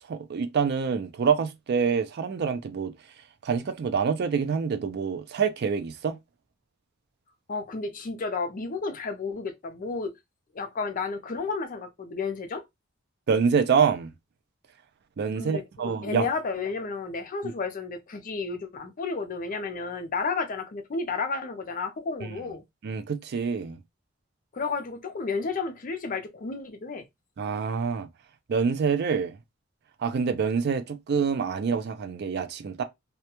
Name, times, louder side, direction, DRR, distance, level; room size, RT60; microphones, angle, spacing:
voice 1, 0.1-2.9 3.4-6.2 13.3-14.1 15.2-16.3 22.2-22.3 22.8-23.8 27.4-28.1 28.5-29.3 30.0-32.8, right 6 dB, 55° right, 0.4 m, -26 dB
voice 2, 7.5-10.1 10.5-12.6 15.3-22.6 24.5-27.1, left 4 dB, 40° left, 0.5 m, -32 dB
2.3 x 2.1 x 2.9 m
head